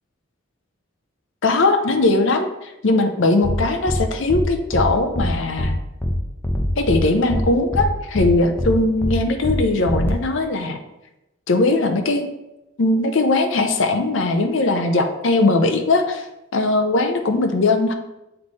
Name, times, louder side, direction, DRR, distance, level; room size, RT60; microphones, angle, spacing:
voice 1, 1.4-5.8 6.8-10.8 11.5-12.3 12.8-16.3 16.5-17.9, left 2 dB, 65° left, 5 dB, 0.6 m, -19 dB
sound 1, 3.4-3.6 3.9-4.0 4.3-4.4 4.7-4.9 5.2-5.3 5.6-5.7 6.0-6.1 6.4-7.0 7.3-7.4 7.7-7.9 8.2-8.3 8.6-8.7 9.0-9.1 9.4-9.6 9.9-10.1, equal, 10° left, 0.7 m, -22 dB
7.9 x 3.3 x 4.1 m, 0.94 s
head